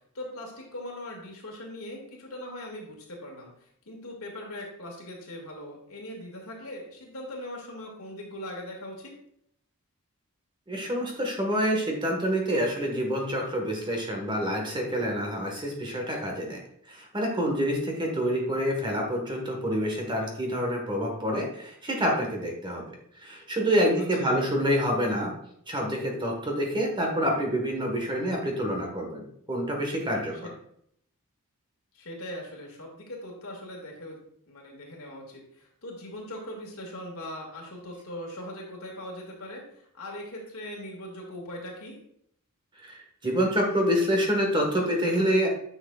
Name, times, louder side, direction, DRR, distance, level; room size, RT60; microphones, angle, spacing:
voice 1, 0.1-3.5 3.9-9.1 24.2-24.4 31.9-34.2 34.5-39.6 39.9-41.9, left 1 dB, 70° left, -1 dB, 2.1 m, -40 dB
voice 2, 10.7-16.6 16.9-22.8 23.1-25.3 25.7-29.2 29.5-30.5 42.8-45.5, equal, 20° right, 1 dB, 1.4 m, -27 dB
9.7 x 6.2 x 2.4 m, 0.70 s
head